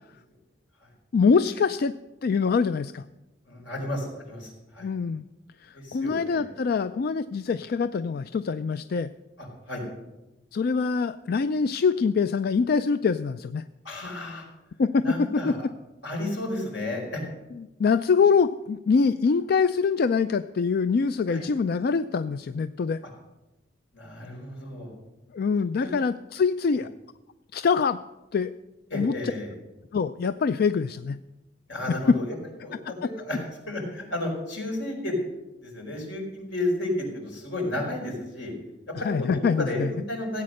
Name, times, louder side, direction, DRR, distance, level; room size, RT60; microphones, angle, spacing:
voice 1, 1.1-1.9 2.2-3.0 4.8-5.3 5.6-9.1 10.5-13.6 14.8-15.0 15.3-15.5 17.6-23.0 25.3-26.9 27.5-28.0 28.3-28.5 28.9-29.1 29.9-31.2 39.0-39.9, left 5 dB, 55° left, 12 dB, 0.4 m, -24 dB
voice 2, 3.5-4.9 5.7-6.5 9.7-9.8 13.8-14.4 15.0-15.6 16.0-17.2 21.3-21.4 23.9-24.9 25.8-26.0 28.9-29.5 31.7-32.3 32.6-32.8 33.0-33.4 33.7-35.2 35.6-38.5 38.9-40.4, left 1 dB, 80° left, 0 dB, 4.8 m, -32 dB
16.0 x 8.5 x 6.4 m, 1.0 s
head